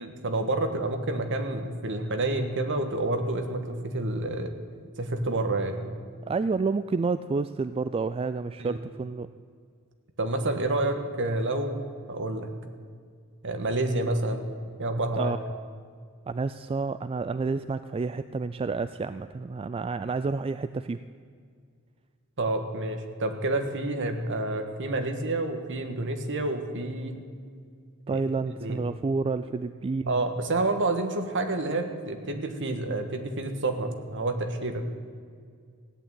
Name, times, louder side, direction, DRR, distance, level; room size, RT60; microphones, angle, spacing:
voice 1, 0.0-4.5 5.0-5.9 8.6-8.8 10.2-12.5 13.4-14.5 14.8-15.3 22.4-27.2 28.1-28.2 28.6-28.8 30.1-35.0, right 2 dB, 55° right, 6 dB, 1.5 m, -29 dB
voice 2, 6.3-9.3 15.2-15.4 16.3-21.0 28.1-30.2, right 4 dB, 25° right, 12 dB, 0.3 m, -29 dB
16.0 x 8.8 x 9.2 m, 2.1 s
head